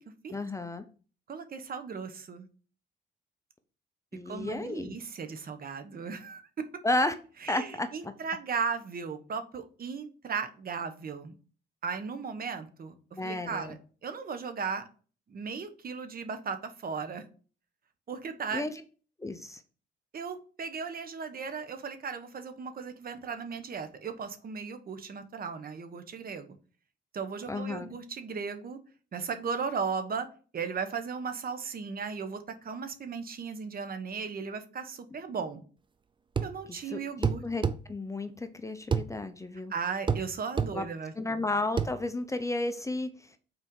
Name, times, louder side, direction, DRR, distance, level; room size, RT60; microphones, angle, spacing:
voice 1, 0.3-0.8 4.1-5.0 6.8-7.1 7.5-8.1 13.2-13.8 18.5-18.7 19.2-19.6 27.5-27.9 36.7-37.6 37.9-39.7 40.7-40.8 41.2-43.1, left 2 dB, 15° left, 9 dB, 0.8 m, -32 dB
voice 2, 1.3-2.5 4.2-6.7 7.4-11.3 11.8-12.9 13.2-14.8 15.3-17.2 18.1-18.6 20.1-26.5 27.1-28.8 29.1-30.3 30.5-35.6 36.4-37.4 39.7-41.1, right 5 dB, 50° right, 9 dB, 1.2 m, -36 dB
sound 1, 36.4-36.6 37.2-37.8 38.9-39.1 40.1-40.3 40.6-40.7 41.8-41.9, right 6 dB, 25° right, 0.5 m, -27 dB
6.0 x 4.4 x 5.4 m, 0.39 s
cardioid pair, 90°, 20 cm